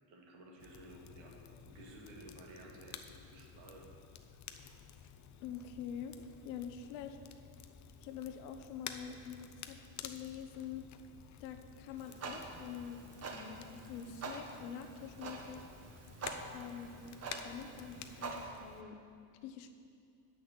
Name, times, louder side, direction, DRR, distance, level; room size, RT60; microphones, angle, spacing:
voice 1, 0.1-1.4 1.6-3.9, right 1 dB, 70° right, -1 dB, 2.2 m, -54 dB
Crackle, 0.6-18.8, left 8 dB, 35° left, 0.6 m, -52 dB
voice 2, 5.4-7.2 8.0-10.9 11.4-15.7 16.5-17.2 17.4-19.0 19.4-19.7, left 8 dB, 90° left, 8 dB, 0.9 m, -46 dB
Clock, 12.0-18.5, right 4 dB, 30° right, 1.1 m, -46 dB
7.7 x 6.1 x 7.7 m, 2.4 s
supercardioid pair, 100°, 49 cm